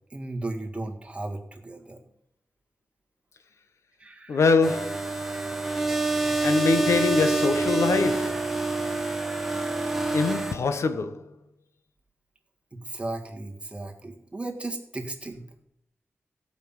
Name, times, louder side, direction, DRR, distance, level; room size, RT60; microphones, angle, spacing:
voice 1, 0.1-2.0 4.0-4.4 12.7-15.4, right 2 dB, 25° right, 1.8 m, -35 dB
voice 2, 4.3-5.2 6.4-8.6 10.1-11.3, left 4 dB, 85° left, 1.1 m, -24 dB
sound 1, 4.6-10.5, right 2 dB, 5° right, 1.4 m, -27 dB
17.0 x 5.7 x 7.2 m
wide cardioid pair, 120°, 5 cm